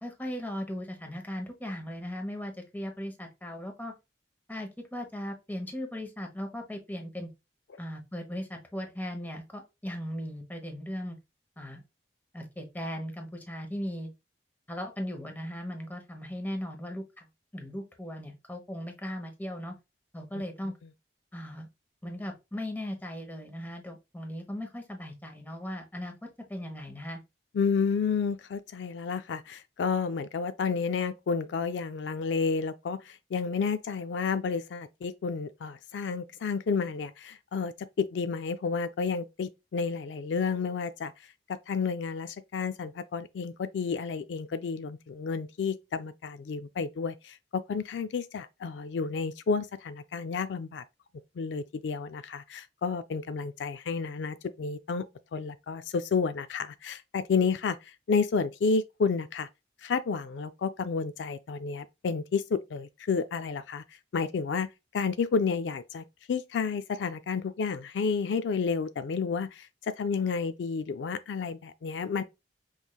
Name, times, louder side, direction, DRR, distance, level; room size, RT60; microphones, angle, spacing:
voice 1, 0.0-3.9 4.5-7.3 7.8-11.2 11.6-11.8 12.3-14.1 14.7-17.3 17.5-19.7 20.1-20.7 21.3-21.7 22.0-26.1 26.5-27.2, equal, 10° left, 1.0 m, -38 dB
voice 2, 27.5-41.1 41.5-50.8 51.4-55.1 55.3-59.5 59.8-63.8 64.1-64.7 64.9-72.2, left 5 dB, 85° left, 0.4 m, -31 dB
5.3 x 3.2 x 2.3 m
head